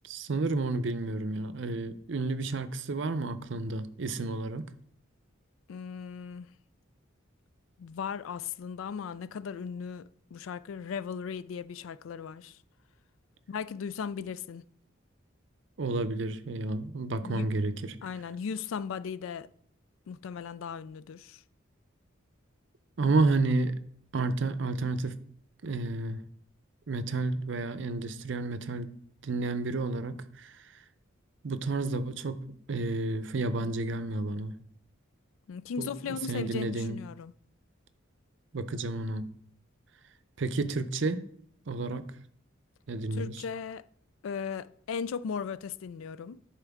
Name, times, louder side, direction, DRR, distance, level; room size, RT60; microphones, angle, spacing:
voice 1, 0.0-4.7 15.8-17.7 23.0-23.7 24.1-25.2 25.6-26.2 26.9-28.9 29.2-30.5 31.4-32.4 32.7-34.5 35.8-37.0 38.5-39.3 40.4-41.2 41.7-42.1 42.9-43.4, right 3 dB, 70° right, 0.6 m, -31 dB
voice 2, 5.7-6.5 7.8-12.6 13.5-14.6 17.2-17.5 18.0-19.5 20.1-21.4 35.5-37.3 43.1-43.8 44.2-46.4, left 6 dB, 90° left, 0.3 m, -37 dB
10.5 x 4.4 x 3.5 m
head